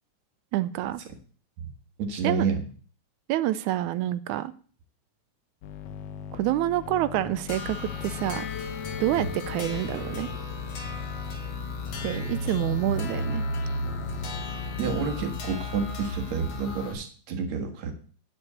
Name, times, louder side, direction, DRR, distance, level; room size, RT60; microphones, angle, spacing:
voice 1, 0.5-1.0 2.2-2.5 3.3-4.5 6.3-8.5 9.0-10.3 12.0-13.4, right 14 dB, 85° right, 14 dB, 2.1 m, -27 dB
voice 2, 2.0-2.6 9.2-9.3 14.8-17.9, right 5 dB, 65° right, 4 dB, 2.8 m, -29 dB
sound 1, 5.6-16.0, left 7 dB, 80° left, 2.4 m, -41 dB
sound 2, 7.5-16.9, left 2 dB, 60° left, 2.7 m, -34 dB
10.0 x 5.3 x 8.1 m, 0.42 s
omnidirectional pair, 3.4 m